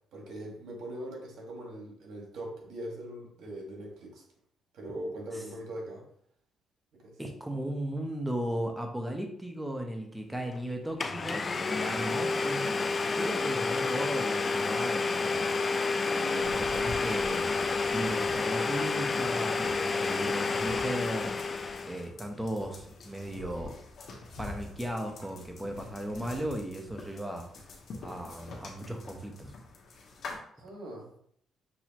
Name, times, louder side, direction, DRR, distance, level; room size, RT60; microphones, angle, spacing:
voice 1, 0.1-4.2 4.7-6.0 6.9-7.2 16.1-16.5 30.6-31.1, right 1 dB, 75° right, -1 dB, 1.6 m, -41 dB
voice 2, 7.2-12.8 13.2-15.5 16.1-17.5 17.9-21.3 21.8-23.7 24.4-27.5 28.0-29.5, right 1 dB, 5° right, 3 dB, 0.9 m, -36 dB
Domestic sounds home sounds, 10.5-10.6 11.0-22.1, left 4 dB, 35° left, 0.4 m, -30 dB
sound 1, 16.4-30.4, left 3 dB, 60° left, 1.1 m, -46 dB
6.2 x 2.8 x 2.9 m, 0.65 s
cardioid pair, 90°, 0 cm